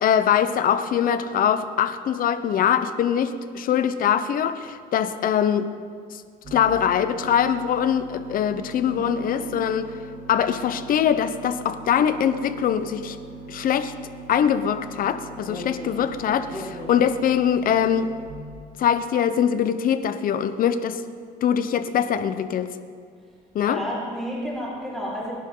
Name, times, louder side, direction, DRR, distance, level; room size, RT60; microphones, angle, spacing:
voice 1, 0.0-5.7 6.1-6.2 6.5-9.9 10.3-13.2 13.5-13.9 14.3-18.1 18.8-21.0 21.4-22.7 23.5-23.8, left 8 dB, 55° left, 11 dB, 0.9 m, -22 dB
sound 1, 6.4-18.3, right 3 dB, 40° right, 3.4 m, -41 dB
voice 2, 8.8-9.5 15.4-15.9 16.5-16.9 23.6-25.3, equal, ahead, -8 dB, 4.7 m, -32 dB
22.5 x 11.0 x 3.9 m, 2.1 s
cardioid pair, 110°, 17 cm